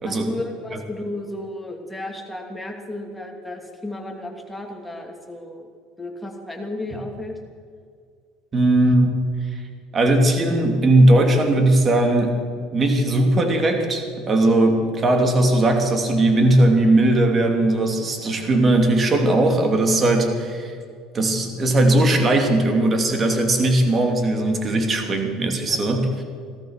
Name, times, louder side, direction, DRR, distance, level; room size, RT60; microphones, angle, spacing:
voice 1, 0.0-5.7 6.0-7.4 25.7-25.8, left 1 dB, 5° left, 1 dB, 2.7 m, -33 dB
voice 2, 8.5-9.2 9.9-12.4 12.7-20.8 21.1-26.1, right 1 dB, 30° right, 4 dB, 2.8 m, -18 dB
16.5 x 13.5 x 6.6 m, 2.1 s
supercardioid pair, 110°, 0 cm